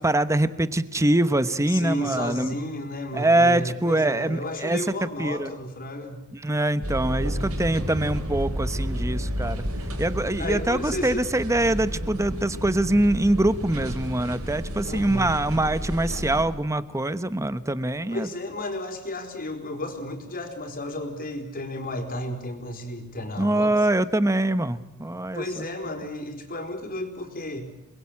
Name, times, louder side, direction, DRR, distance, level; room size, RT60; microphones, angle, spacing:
voice 1, 0.0-2.5 3.1-5.5 6.3-9.6 10.0-18.3 23.4-25.6, right 1 dB, 15° right, 13 dB, 1.0 m, -24 dB
voice 2, 1.7-6.2 10.4-11.2 14.8-15.3 18.1-23.7 25.3-27.7, left 1 dB, 40° left, 4 dB, 4.5 m, -33 dB
sound 1, 6.8-16.4, equal, 75° right, 5.7 m, -31 dB
29.0 x 21.5 x 8.7 m, 0.94 s
head